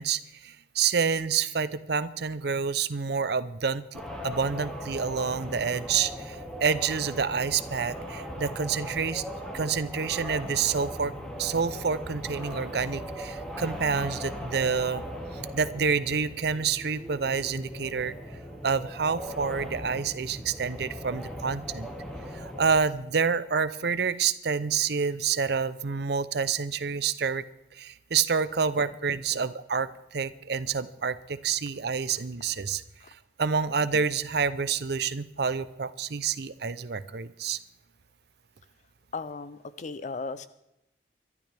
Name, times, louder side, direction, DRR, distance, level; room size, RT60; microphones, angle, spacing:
voice 1, 0.0-9.2 9.5-11.1 11.4-15.0 15.3-18.1 18.6-21.9 22.3-27.4 27.7-32.8 33.4-37.6, right 6 dB, 60° right, 14 dB, 0.6 m, -28 dB
sound 1, 3.9-22.8, equal, 5° left, 2.2 m, -38 dB
voice 2, 39.1-40.5, left 4 dB, 40° left, 13 dB, 0.5 m, -37 dB
24.5 x 12.0 x 3.4 m, 0.88 s
head